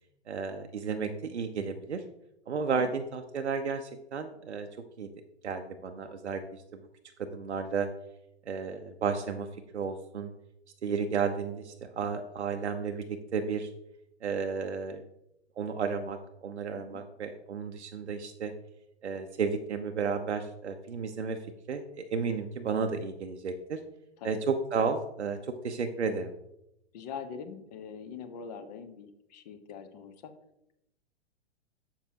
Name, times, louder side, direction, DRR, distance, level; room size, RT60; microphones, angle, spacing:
voice 1, 0.3-2.0 2.5-4.7 5.0-5.1 5.4-6.8 7.2-7.9 8.5-9.5 9.7-10.3 10.8-13.7 14.2-15.0 15.6-18.5 19.0-21.4 21.7-23.8 24.2-26.3, right 5 dB, 75° right, 6 dB, 0.6 m, -33 dB
voice 2, 26.9-30.3, left 6 dB, 35° left, 9 dB, 0.8 m, -43 dB
7.2 x 6.9 x 2.9 m, 0.84 s
figure-of-eight pair, 110°, 34 cm